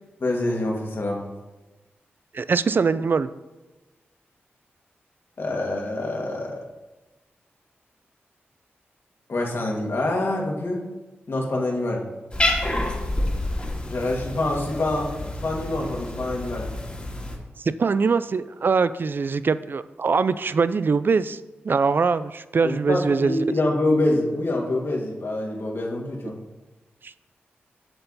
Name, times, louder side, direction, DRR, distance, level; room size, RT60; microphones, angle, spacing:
voice 1, 0.2-1.2 5.4-6.6 9.3-10.8 11.3-12.0 13.8-15.1 15.4-16.7 22.6-26.4, left 2 dB, 60° left, -1 dB, 2.0 m, -25 dB
voice 2, 2.3-3.3 17.6-21.4 21.6-23.4 27.0-27.1, right 5 dB, 50° right, 15 dB, 0.4 m, -22 dB
Cat, 12.3-17.4, left 1 dB, 25° left, 1.9 m, -28 dB
7.7 x 6.8 x 4.1 m, 1.1 s
cardioid pair, 60°, 4 cm